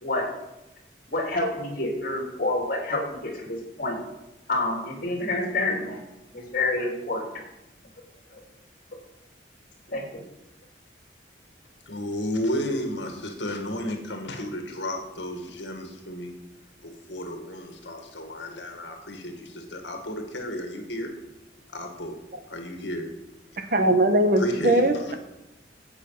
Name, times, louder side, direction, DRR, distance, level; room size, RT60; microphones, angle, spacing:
voice 1, 1.1-4.0 4.5-6.0 6.3-7.2 8.3-8.4 9.9-10.2, left 2 dB, 50° left, 0 dB, 3.1 m, -28 dB
voice 2, 11.9-16.3 16.8-21.1 21.7-22.2 22.5-23.1 24.4-25.0, equal, 75° left, 4 dB, 1.9 m, -32 dB
voice 3, 23.6-25.2, right 1 dB, 50° right, 7 dB, 1.1 m, -21 dB
12.0 x 8.3 x 5.7 m, 0.95 s
head